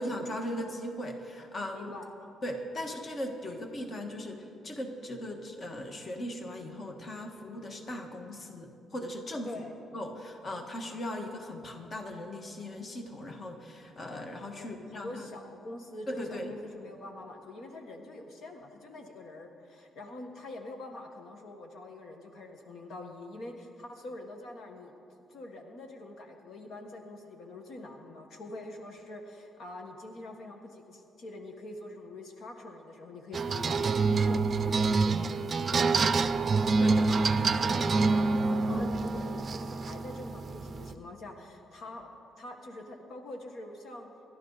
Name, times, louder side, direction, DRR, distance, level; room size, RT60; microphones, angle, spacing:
voice 1, 0.0-1.9 2.4-9.5 9.9-15.3 16.1-16.6 36.8-37.1 37.4-37.6 38.7-38.9, left 1 dB, 35° left, 3 dB, 1.6 m, -38 dB
voice 2, 1.7-2.3 9.4-9.7 14.6-36.3 36.7-42.1 42.4-44.1, left 2 dB, 60° left, 3 dB, 1.4 m, -45 dB
sound 1, 33.3-40.9, right 4 dB, 35° right, 0.5 m, -27 dB
28.0 x 12.0 x 4.1 m, 2.7 s
cardioid pair, 135°, 0 cm